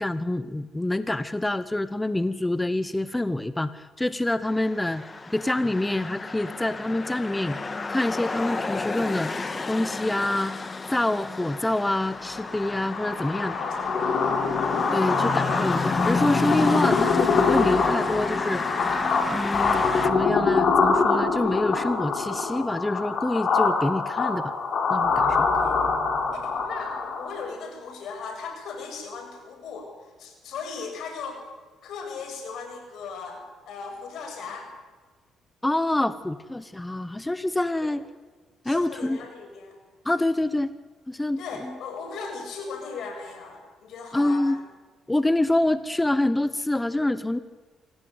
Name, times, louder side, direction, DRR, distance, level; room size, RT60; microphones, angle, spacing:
voice 1, 0.0-5.0 5.3-7.6 7.9-9.3 9.7-10.5 10.9-13.5 14.9-18.6 19.3-24.5 24.9-25.5 35.6-38.0 38.6-39.2 40.0-40.7 41.1-41.4 44.1-44.6 45.1-47.4, left 1 dB, 10° left, 13 dB, 1.0 m, -26 dB
sound 1, 4.5-20.1, left 3 dB, 30° left, 2.0 m, -32 dB
sound 2, 12.2-27.5, left 4 dB, 55° left, 5.3 m, -24 dB
voice 2, 13.5-14.4 25.3-25.8 26.3-31.4 31.8-34.7 37.8-38.0 38.6-39.8 41.4-44.6, left 5 dB, 75° left, 4 dB, 7.7 m, -38 dB
26.0 x 18.0 x 9.4 m, 1.4 s
cardioid pair, 90°, 0 cm